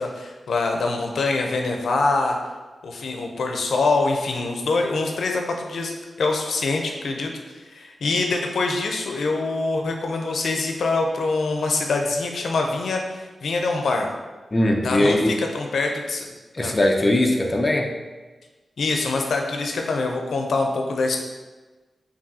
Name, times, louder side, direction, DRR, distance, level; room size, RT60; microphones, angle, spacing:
voice 1, 0.0-2.4 2.8-7.3 7.7-14.1 14.8-16.3 16.6-16.7 18.8-21.2, left 3 dB, 80° left, 2 dB, 0.4 m, -24 dB
voice 2, 14.5-15.4 16.5-17.9, left 1 dB, 20° left, 1 dB, 0.4 m, -20 dB
5.3 x 2.7 x 2.7 m, 1.3 s
wide cardioid pair, 155°, 0 cm